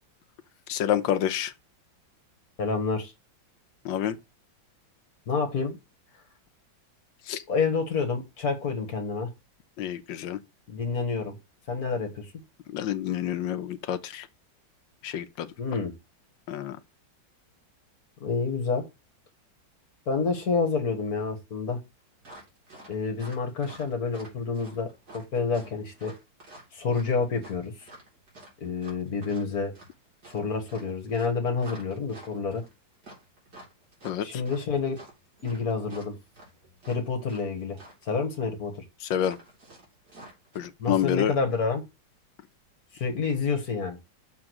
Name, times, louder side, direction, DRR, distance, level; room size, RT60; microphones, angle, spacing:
voice 1, 0.7-1.5 3.8-4.2 7.3-7.4 9.8-10.4 12.7-14.3 15.0-15.5 16.5-16.8 34.0-34.3 39.1-39.4 40.5-41.3, left 10 dB, 80° left, 1.5 m, -28 dB
voice 2, 2.6-3.1 5.3-5.8 7.5-9.3 10.7-11.4 11.7-12.3 15.6-15.9 18.2-18.9 20.1-21.8 22.9-24.9 25.1-26.1 26.7-27.7 28.6-29.7 30.3-32.6 34.2-35.0 35.4-36.2 36.9-37.8 38.0-38.7 40.8-41.8 42.9-44.0, left 4 dB, 50° left, 2.0 m, -28 dB
sound 1, 22.2-37.5 37.7-38.1 39.2-40.6, right 1 dB, 55° right, 3.7 m, -49 dB
6.7 x 3.7 x 6.1 m
omnidirectional pair, 2.0 m